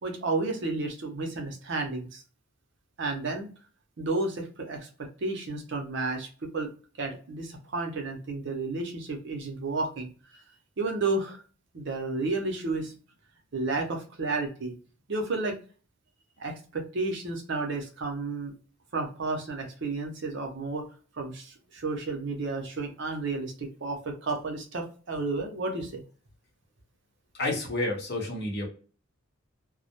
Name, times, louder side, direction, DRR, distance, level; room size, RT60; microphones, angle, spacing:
voice 1, 0.0-2.2 3.0-3.5 4.0-6.7 7.0-10.4 10.8-11.4 11.7-12.9 13.5-14.7 15.1-15.6 16.4-18.5 18.9-20.9 21.2-26.0, right 3 dB, 60° right, 3 dB, 0.6 m, -32 dB
voice 2, 27.3-28.7, left 2 dB, 55° left, 0 dB, 0.9 m, -30 dB
2.2 x 2.0 x 2.7 m, 0.38 s
head